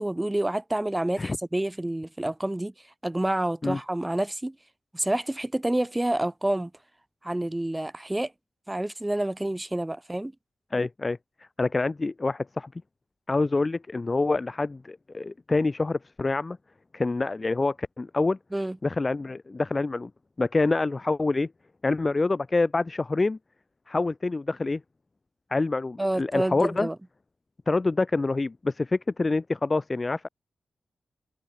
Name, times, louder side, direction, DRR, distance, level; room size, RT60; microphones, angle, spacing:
voice 1, 0.0-2.7 3.0-4.6 4.9-6.7 7.2-8.3 8.7-10.3 18.5-18.8 26.0-27.0, right 1 dB, 10° right, 2.1 m, -28 dB
voice 2, 10.7-11.2 11.6-12.7 13.3-16.6 16.9-18.4 18.8-20.1 20.4-21.5 21.8-23.4 23.9-24.8 25.5-26.9 27.7-30.3, left 3 dB, 25° left, 0.9 m, -26 dB
wide cardioid pair, 110°, 0 cm